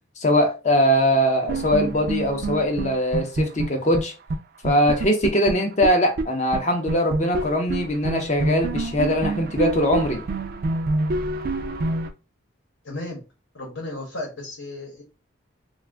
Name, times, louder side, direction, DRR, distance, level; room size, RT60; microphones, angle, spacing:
voice 1, 0.2-4.1 4.6-10.2, equal, 35° left, 0.5 m, -21 dB
sound 1, 1.5-4.0 4.3-4.4 4.6-6.2 6.5-6.6 6.9-12.1, right 2 dB, 45° right, 0.3 m, -27 dB
voice 2, 12.8-13.2 13.5-15.0, left 2 dB, 75° left, 1.0 m, -34 dB
2.5 x 2.3 x 3.4 m
head